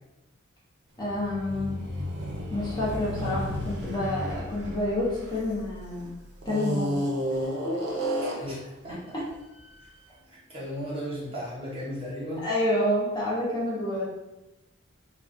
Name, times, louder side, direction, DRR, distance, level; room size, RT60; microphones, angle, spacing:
voice 1, 1.0-1.7 2.5-6.1 6.4-7.0 7.7-7.8 12.4-14.0, left 1 dB, 20° left, -7 dB, 0.5 m, -28 dB
sound 1, 1.0-5.8 6.4-8.6, equal, 55° right, 0.5 m, -32 dB
voice 2, 8.2-9.1 10.2-12.5, equal, 30° right, -7 dB, 0.8 m, -36 dB
2.3 x 2.1 x 2.5 m, 0.97 s
head